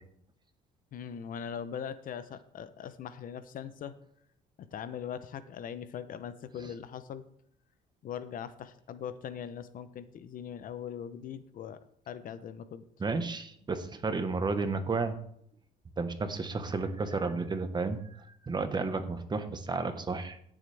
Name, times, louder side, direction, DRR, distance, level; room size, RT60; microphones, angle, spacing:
voice 1, 0.9-4.0 4.6-7.3 8.0-11.8 12.1-12.9, left 8 dB, 55° left, 13 dB, 0.8 m, -41 dB
voice 2, 13.0-15.2 16.0-20.4, right 4 dB, 25° right, 9 dB, 1.3 m, -32 dB
16.5 x 7.4 x 3.5 m, 0.68 s
cardioid pair, 110°, 17 cm